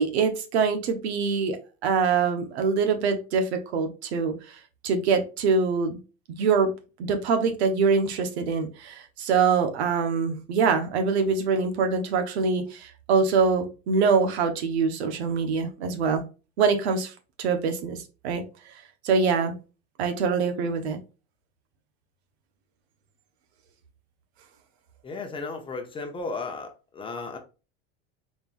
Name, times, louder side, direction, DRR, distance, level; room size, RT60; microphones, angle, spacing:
voice 1, 0.0-1.6 1.8-4.3 4.8-6.0 6.3-6.7 7.0-16.2 16.6-17.1 17.4-18.4 19.0-19.6 20.0-21.0, right 5 dB, 90° right, 1.2 m, -24 dB
voice 2, 25.0-27.4, left 3 dB, 15° left, 0.8 m, -34 dB
4.2 x 3.6 x 2.5 m
supercardioid pair, 150°, 32 cm